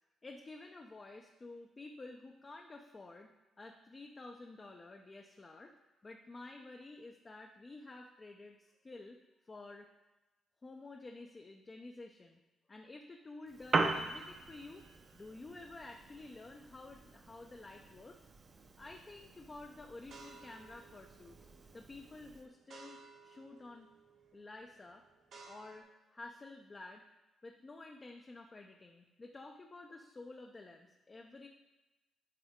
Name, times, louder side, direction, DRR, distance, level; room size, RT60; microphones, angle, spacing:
voice 1, 0.2-3.3 3.6-5.7 6.0-9.2 9.4-9.9 10.6-12.4 12.7-14.9 15.1-18.3 18.8-21.4 21.7-23.9 24.3-25.0 25.5-27.1 27.4-31.5, left 2 dB, 30° left, 2 dB, 0.5 m, -51 dB
Piano, 13.5-22.5, right 3 dB, 40° right, 0.7 m, -41 dB
sound 1, 18.6-18.9 19.5-25.8, right 4 dB, 65° right, 1.3 m, -58 dB
9.3 x 3.5 x 3.6 m, 1.1 s
cardioid pair, 90°, 0 cm